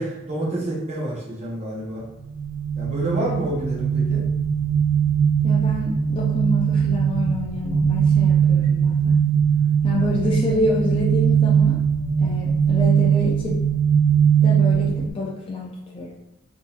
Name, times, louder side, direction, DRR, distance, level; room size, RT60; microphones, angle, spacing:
voice 1, 0.0-2.0 2.7-4.2, right 1 dB, 30° right, -5 dB, 0.8 m, -28 dB
sound 1, 2.3-15.1, right 7 dB, 70° right, 0.5 m, -20 dB
voice 2, 5.4-9.2 9.8-11.8 12.2-13.6 14.4-16.1, left 1 dB, 25° left, -4 dB, 0.4 m, -27 dB
3.8 x 2.7 x 2.4 m, 0.92 s
head